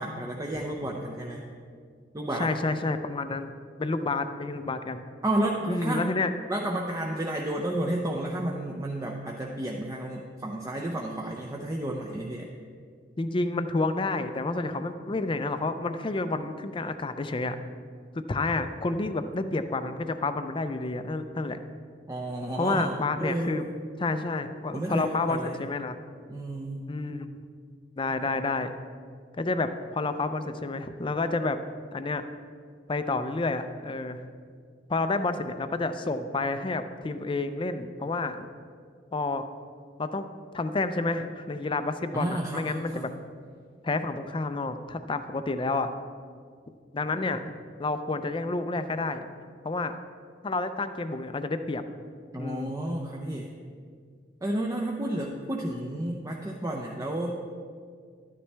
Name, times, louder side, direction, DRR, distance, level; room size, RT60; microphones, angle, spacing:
voice 1, 0.0-1.4 2.1-2.5 5.2-6.1 6.5-12.5 22.1-23.5 24.7-25.6 26.3-26.9 42.1-43.1 52.3-53.5 54.4-57.4, right 1 dB, 20° right, -1 dB, 0.6 m, -31 dB
voice 2, 2.4-3.5 3.8-5.1 5.7-6.3 13.2-17.6 18.1-21.6 22.5-23.6 24.0-26.0 26.9-27.4 28.0-28.7 29.4-31.6 31.9-32.2 32.9-34.2 34.9-38.5 39.1-39.5 40.0-40.3 40.5-43.1 43.8-45.9 46.9-47.4 47.8-49.3 49.6-50.0 50.4-51.8 52.4-52.7, left 3 dB, 30° left, 10 dB, 0.5 m, -29 dB
12.0 x 9.8 x 3.4 m, 2.1 s
head